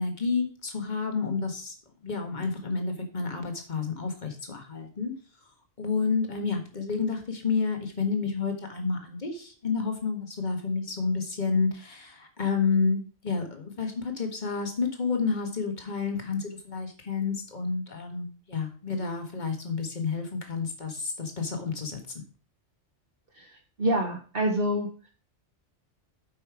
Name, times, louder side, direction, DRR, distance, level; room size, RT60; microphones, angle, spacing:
voice 1, 0.0-1.7 2.0-5.1 5.8-22.0, left 4 dB, 40° left, 5 dB, 1.7 m, -30 dB
voice 2, 23.3-25.1, right 1 dB, 50° right, 0 dB, 1.4 m, -28 dB
8.6 x 5.5 x 4.8 m, 0.38 s
omnidirectional pair, 1.2 m